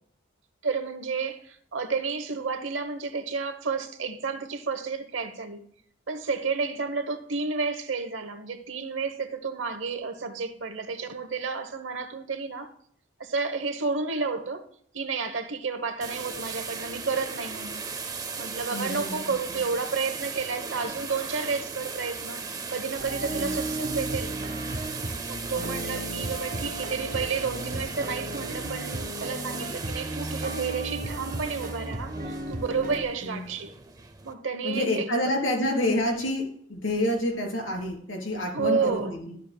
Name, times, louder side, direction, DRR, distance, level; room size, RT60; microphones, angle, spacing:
voice 1, 0.6-5.6 6.1-12.7 13.2-14.6 14.9-17.8 18.4-22.4 22.7-24.3 25.3-33.7 34.2-35.1 38.5-39.4, right 4 dB, 80° right, 0.9 m, -31 dB
sound 1, 16.0-34.3, right 5 dB, 20° right, 0.5 m, -37 dB
voice 2, 18.7-19.3 23.3-23.6 25.5-26.3 33.2-33.5 34.6-39.3, left 1 dB, 85° left, 3.3 m, -29 dB
sound 2, 23.0-33.0, right 1 dB, 45° right, 1.5 m, -35 dB
12.0 x 7.5 x 2.2 m
head